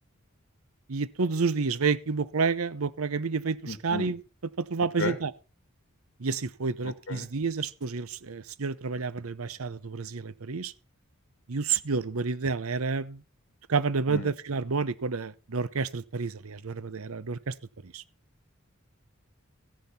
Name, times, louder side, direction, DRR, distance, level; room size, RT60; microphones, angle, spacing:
voice 1, 0.9-4.2 4.6-5.3 6.2-10.7 11.5-13.2 13.7-17.5 17.9-18.0, right 4 dB, 85° right, 0.8 m, -29 dB
voice 2, 3.7-4.1 5.0-5.2 6.8-7.3 14.1-14.3, left 3 dB, 55° left, 1.3 m, -34 dB
14.0 x 10.5 x 4.2 m
head